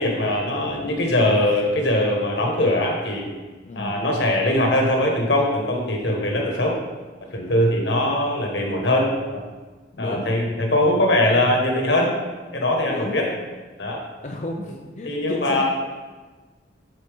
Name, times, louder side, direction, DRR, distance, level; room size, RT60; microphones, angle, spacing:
voice 1, 0.0-3.3 3.8-6.8 7.2-9.4 10.0-12.1 12.5-13.2 13.8-14.0 15.0-15.6, left 1 dB, 80° left, 0 dB, 1.4 m, -21 dB
voice 2, 3.6-4.0 9.9-10.3 12.9-13.2 14.2-15.6, left 1 dB, 40° left, 0 dB, 0.5 m, -32 dB
10.5 x 4.3 x 3.6 m, 1.3 s
head